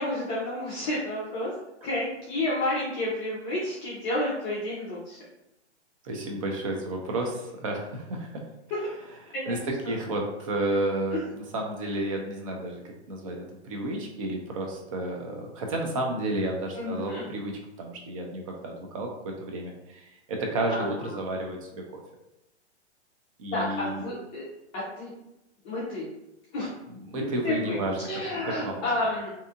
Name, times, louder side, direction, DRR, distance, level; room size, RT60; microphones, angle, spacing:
voice 1, 0.0-1.5 1.8-5.2 9.3-9.7 11.1-11.3 16.7-17.2 20.7-20.9 23.5-24.4 24.7-25.1 25.6-26.1 26.5-26.7 27.1-29.3, left 1 dB, 25° left, -8 dB, 0.5 m, -30 dB
voice 2, 6.0-8.3 9.2-9.6 9.9-12.8 13.1-17.5 17.8-21.8 23.4-24.0 26.9-28.0 28.3-28.9, right 1 dB, 30° right, 1 dB, 0.4 m, -31 dB
2.7 x 2.4 x 2.3 m, 0.88 s
hypercardioid pair, 140°, 35 cm